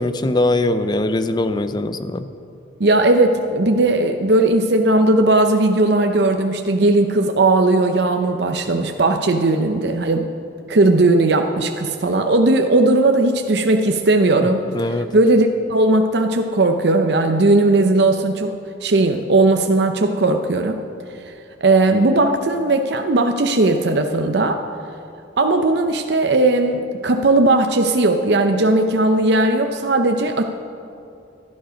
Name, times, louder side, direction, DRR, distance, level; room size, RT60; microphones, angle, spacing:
voice 1, 0.0-2.3 14.7-15.1, left 2 dB, 25° left, 10 dB, 0.5 m, -21 dB
voice 2, 2.8-10.3 10.7-14.7 15.1-18.6 18.8-20.8 21.2-21.3 21.6-24.6 25.4-30.4, right 2 dB, 60° right, 5 dB, 0.7 m, -17 dB
16.5 x 12.0 x 5.1 m, 2.6 s
head